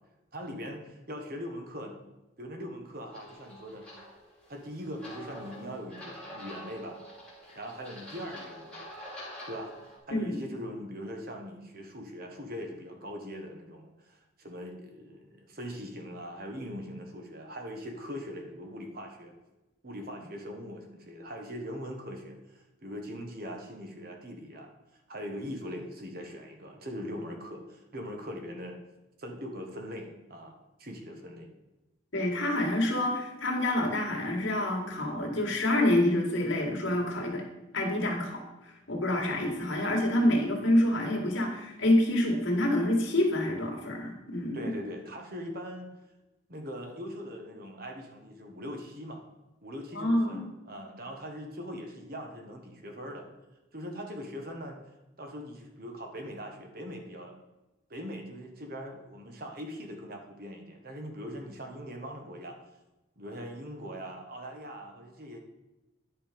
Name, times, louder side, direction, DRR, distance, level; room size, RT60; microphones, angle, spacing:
voice 1, 0.3-2.0 2.4-3.9 4.5-7.0 7.5-8.8 9.5-9.7 10.1-19.3 19.8-28.8 29.2-31.5 44.5-45.9 46.5-49.2 49.6-53.3 53.7-54.8 55.2-57.4 57.9-62.6 63.2-65.4, equal, 45° right, 3 dB, 1.4 m, -41 dB
sound 1, 3.1-10.0, equal, 5° left, 2.7 m, -46 dB
voice 2, 32.1-37.4 37.7-44.7 49.9-50.5, left 1 dB, 75° left, 0 dB, 2.1 m, -27 dB
10.5 x 5.6 x 5.2 m, 1.0 s
head